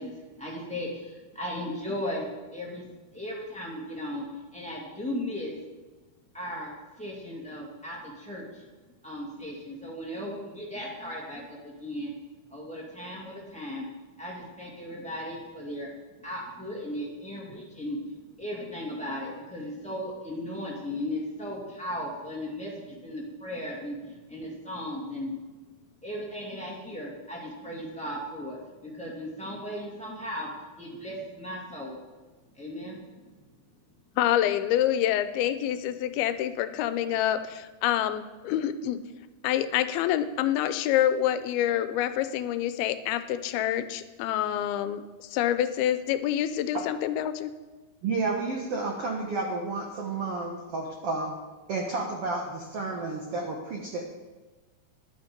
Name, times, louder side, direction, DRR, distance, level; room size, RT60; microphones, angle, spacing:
voice 1, 0.0-2.9 3.1-5.5 6.3-8.6 9.0-12.1 12.5-13.9 14.2-15.9 16.2-25.4 26.0-30.5 30.8-32.0 32.5-33.0 34.4-34.5, left 1 dB, 5° left, -4 dB, 0.8 m, -36 dB
voice 2, 34.2-39.0 39.4-47.5, left 11 dB, 85° left, 12 dB, 2.5 m, -27 dB
voice 3, 48.0-51.3 51.7-54.1, right 3 dB, 80° right, 0 dB, 1.3 m, -31 dB
11.0 x 8.9 x 5.2 m, 1.3 s
omnidirectional pair, 4.4 m